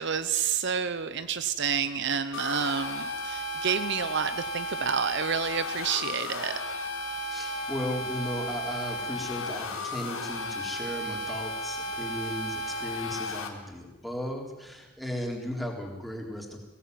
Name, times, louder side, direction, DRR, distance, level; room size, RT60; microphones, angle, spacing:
voice 1, 0.0-6.6, right 6 dB, 55° right, 12 dB, 0.8 m, -29 dB
sound 1, 2.3-13.5, left 1 dB, 75° left, 3.6 m, -34 dB
voice 2, 7.3-16.6, left 1 dB, ahead, 0 dB, 3.8 m, -36 dB
22.0 x 17.5 x 9.4 m, 1.1 s
head